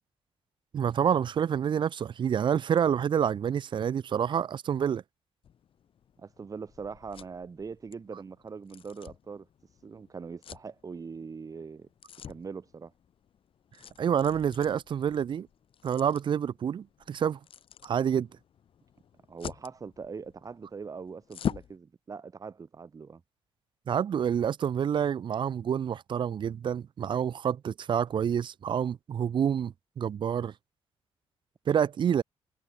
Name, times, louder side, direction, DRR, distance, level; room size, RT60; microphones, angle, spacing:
voice 1, 0.7-5.0 14.0-15.5 15.8-17.4 17.8-18.3 23.9-30.5 31.7-32.2, right 8 dB, 50° right, 0.7 m, -28 dB
sound 1, 5.4-21.8, left 8 dB, 60° left, 6.6 m, -45 dB
voice 2, 6.2-9.5 9.8-11.9 12.3-12.9 19.3-23.2, right 5 dB, 35° right, 2.2 m, -42 dB
cardioid pair, 110°, 10 cm